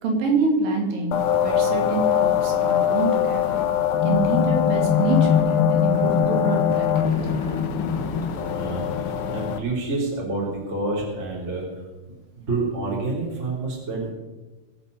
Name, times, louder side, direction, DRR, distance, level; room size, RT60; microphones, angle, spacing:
voice 1, 0.0-3.7 4.0-7.4, right 3 dB, 90° right, 1 dB, 4.2 m, -26 dB
sound 1, 1.1-9.6, left 8 dB, 70° left, 1.3 m, -22 dB
Bowed string instrument, 4.8-9.7, left 5 dB, 10° left, 1.9 m, -40 dB
voice 2, 8.4-11.7 12.4-14.1, right 2 dB, 20° right, -4 dB, 3.4 m, -28 dB
22.0 x 8.6 x 5.4 m, 1.3 s
omnidirectional pair, 3.8 m